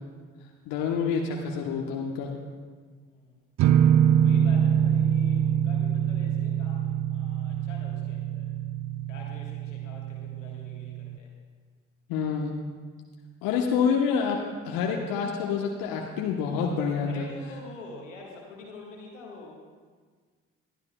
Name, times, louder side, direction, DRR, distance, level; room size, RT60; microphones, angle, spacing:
voice 1, 0.7-2.3 12.1-12.5 13.4-14.4 14.6-17.3, left 6 dB, 70° left, 0 dB, 1.1 m, -27 dB
sound 1, 3.6-11.2, right 9 dB, 50° right, 0.5 m, -25 dB
voice 2, 4.1-8.5 9.1-11.3 17.0-19.5, left 3 dB, 85° left, -1 dB, 1.6 m, -46 dB
21.5 x 12.5 x 2.3 m, 1.6 s
figure-of-eight pair, 40°, 36 cm